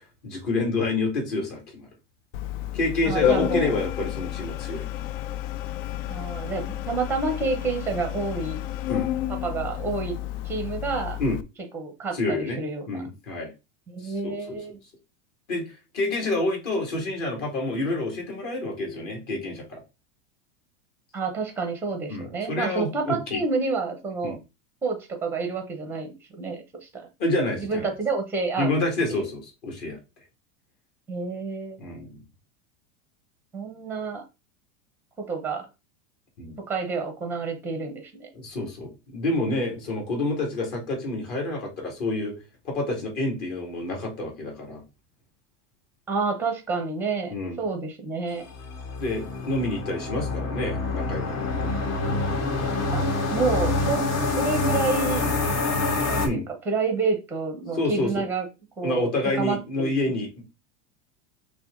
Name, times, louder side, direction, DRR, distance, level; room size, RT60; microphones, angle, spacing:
voice 1, 0.2-1.9 2.7-4.9 8.9-9.1 11.2-11.4 12.1-12.6 12.9-13.5 14.0-14.6 15.5-15.7 15.9-19.8 22.1-23.4 24.2-24.4 27.2-27.9 28.6-30.0 31.8-32.2 36.4-36.6 38.3-42.3 42.6-44.8 47.3-47.6 49.0-51.8 56.2-56.4 57.8-58.2 58.8-60.4, left 2 dB, 45° left, 1 dB, 2.1 m, -28 dB
Organ, 2.3-11.4, left 12 dB, 75° left, 0.5 m, -30 dB
voice 2, 3.1-3.8 6.1-8.7 9.3-10.2 10.4-11.2 11.7-13.0 13.9-14.8 21.1-24.4 24.8-27.1 27.6-28.8 29.1-29.2 31.1-31.8 33.5-34.2 35.2-35.7 36.6-38.3 46.1-48.5 52.9-53.0 53.3-54.0 54.3-55.2 56.1-58.5 58.8-59.1 59.4-59.9, right 4 dB, 5° right, 5 dB, 0.6 m, -29 dB
sound 1, 48.4-56.3, left 3 dB, 60° left, 1.5 m, -26 dB
6.0 x 2.2 x 3.6 m, 0.26 s
supercardioid pair, 170°, 37 cm